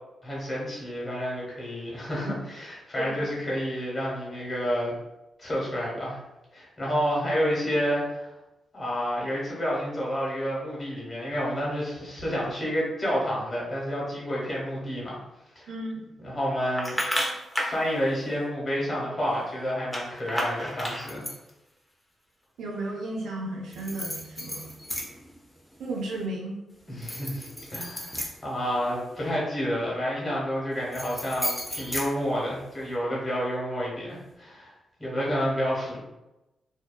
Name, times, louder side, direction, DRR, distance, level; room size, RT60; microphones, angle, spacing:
voice 1, 0.2-4.9 5.4-6.2 6.5-8.3 8.7-15.2 15.5-15.7 16.2-17.0 17.6-21.3 26.9-34.7 35.0-36.0, equal, 40° left, -5 dB, 1.3 m, -29 dB
voice 2, 3.0-3.3 15.7-16.0 22.6-24.7 25.8-26.6, right 2 dB, 75° right, -1 dB, 0.6 m, -34 dB
sound 1, 16.8-17.8 19.9-21.5 23.7-25.3 25.7-26.2 26.9-29.2 30.7-32.8, equal, 10° left, 0.7 m, -33 dB
2.7 x 2.2 x 2.2 m, 0.96 s
supercardioid pair, 50°, 0 cm